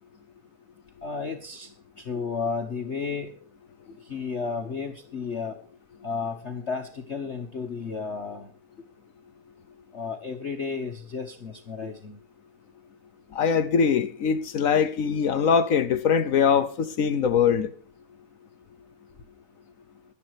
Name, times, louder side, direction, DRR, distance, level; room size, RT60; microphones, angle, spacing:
voice 1, 1.0-1.7 2.0-3.3 4.1-5.6 6.0-8.5 9.9-12.2, left 5 dB, 40° left, 1.0 m, -32 dB
voice 2, 13.3-17.7, left 7 dB, 70° left, 0.8 m, -22 dB
11.5 x 10.5 x 6.3 m
omnidirectional pair, 2.4 m